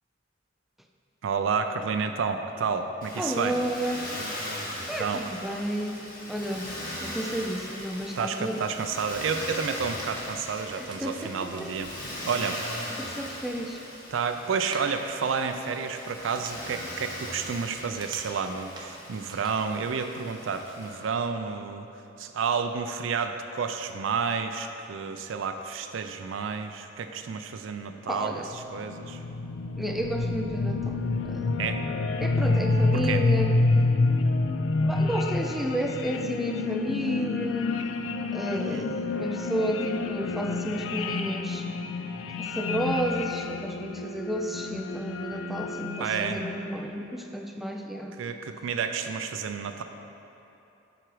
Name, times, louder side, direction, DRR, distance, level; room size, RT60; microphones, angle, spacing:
voice 1, 1.2-3.5 5.0-5.2 8.2-11.9 12.2-12.6 14.1-21.9 22.2-28.4 28.7-29.2 31.6-31.8 32.9-33.2 38.7-38.9 46.0-46.4 48.2-49.8, right 5 dB, 70° right, 7 dB, 0.4 m, -30 dB
Motor vehicle (road), 3.0-21.0, left 1 dB, 45° left, 1.5 m, -39 dB
voice 2, 3.2-4.1 4.9-6.7 7.0-8.6 10.8-11.7 13.0-13.8 28.1-28.5 29.8-31.0 31.2-31.6 32.2-33.6 34.8-37.8 38.3-41.7 42.4-48.1, right 1 dB, ahead, 2 dB, 0.3 m, -32 dB
sound 1, 10.0-19.7, right 2 dB, 20° right, 0.8 m, -47 dB
sound 2, 28.4-46.8, left 3 dB, 70° left, 0.4 m, -28 dB
7.7 x 4.9 x 4.7 m, 2.9 s
head